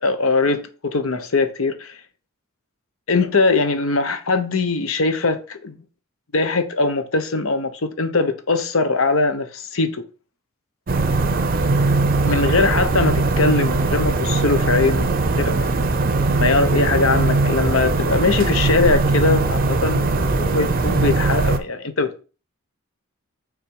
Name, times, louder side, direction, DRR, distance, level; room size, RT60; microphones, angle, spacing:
voice 1, 0.0-1.9 3.1-5.7 6.3-10.0 12.2-15.5 16.2-22.2, left 3 dB, 70° left, 0.9 m, -21 dB
sound 1, 10.9-21.6, right 3 dB, 40° right, 0.5 m, -20 dB
6.5 x 3.8 x 4.8 m
head